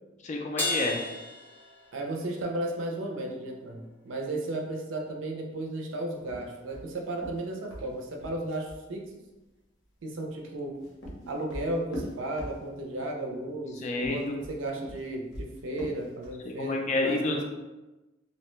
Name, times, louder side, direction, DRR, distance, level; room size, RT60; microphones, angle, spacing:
voice 1, 0.2-1.0 11.2-11.3 13.8-14.3 16.5-17.4, left 2 dB, 40° left, 2 dB, 0.3 m, -29 dB
Crash cymbal, 0.6-2.3, left 1 dB, 10° left, 0.7 m, -33 dB
voice 2, 1.9-9.1 10.0-10.8 11.3-17.4, right 1 dB, 75° right, 2 dB, 0.5 m, -34 dB
sound 1, 6.2-8.8 10.5-13.0 13.9-16.5, equal, 80° left, 0.8 m, -42 dB
2.8 x 2.1 x 3.0 m, 1.1 s
head